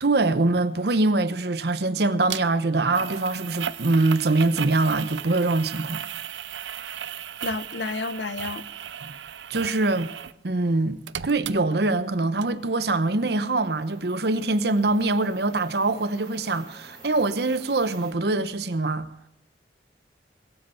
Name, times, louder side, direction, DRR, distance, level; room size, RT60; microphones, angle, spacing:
voice 1, 0.0-6.0 9.5-10.1 10.4-19.1, right 2 dB, 65° right, 0.9 m, -23 dB
sound 1, 2.3-2.4 2.9-10.4 10.7-12.1 12.4-12.5, right 9 dB, 85° right, 0.6 m, -36 dB
voice 2, 7.4-8.6, left 3 dB, 75° left, 0.8 m, -30 dB
sound 2, 12.2-18.1, right 3 dB, 20° right, 5.0 m, -50 dB
21.5 x 7.8 x 5.7 m
head